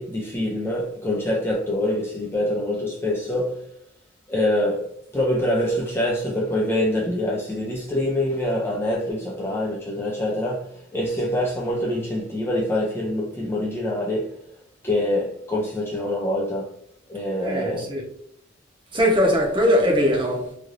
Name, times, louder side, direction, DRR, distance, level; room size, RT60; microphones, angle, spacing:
voice 1, 0.0-3.6 4.3-14.4 14.8-16.7 17.1-17.9, left 1 dB, 10° left, 0.4 m, -25 dB
voice 2, 17.4-18.0 18.9-20.5, equal, 25° right, 0.8 m, -20 dB
3.2 x 2.5 x 2.5 m
head